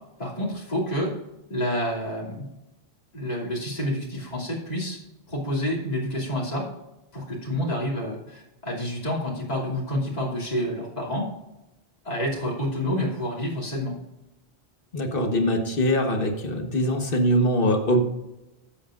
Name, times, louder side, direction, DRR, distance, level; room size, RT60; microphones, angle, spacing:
voice 1, 0.2-1.1 1.5-2.5 3.1-5.0 5.3-6.7 7.1-11.3 12.0-14.0, equal, 40° left, -5 dB, 3.0 m, -28 dB
voice 2, 14.9-18.0, equal, 60° left, 4 dB, 1.6 m, -22 dB
13.0 x 8.7 x 2.6 m, 0.94 s
omnidirectional pair, 1.1 m